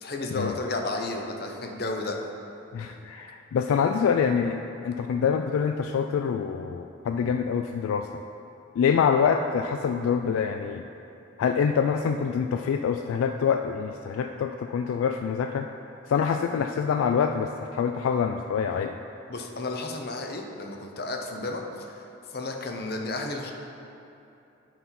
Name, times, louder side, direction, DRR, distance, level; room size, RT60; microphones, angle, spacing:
voice 1, 0.0-2.2 19.3-22.0 22.3-23.5, left 2 dB, 50° left, 3 dB, 0.7 m, -32 dB
voice 2, 2.7-4.6 4.8-8.1 8.8-10.8 11.4-15.7 16.1-19.0, left 6 dB, 90° left, 6 dB, 0.3 m, -25 dB
9.2 x 4.0 x 5.7 m, 2.8 s
head